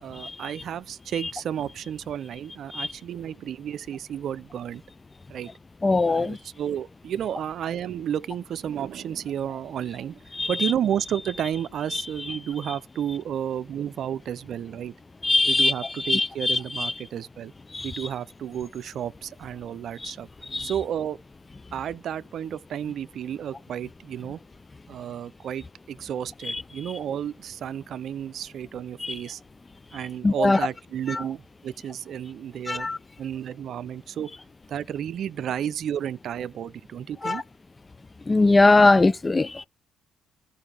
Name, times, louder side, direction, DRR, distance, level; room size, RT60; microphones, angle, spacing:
voice 1, 0.0-4.8 5.3-5.5 6.1-10.2 10.5-14.9 15.5-17.5 17.8-20.3 20.6-21.2 21.7-24.4 24.9-29.4 29.9-32.9 33.2-34.3 34.7-37.4, right 9 dB, 65° right, 0.5 m, -32 dB
voice 2, 5.8-6.4 10.4-10.7 11.9-12.0 15.2-15.7 16.0-16.9 17.7-17.9 20.0-20.1 20.5-20.7 26.5-26.6 29.0-29.1 30.2-30.6 31.1-31.2 32.7-33.0 37.2-37.4 38.3-39.6, left 2 dB, 25° left, 0.4 m, -21 dB
16.0 x 5.4 x 3.3 m
hypercardioid pair, 50°, 0 cm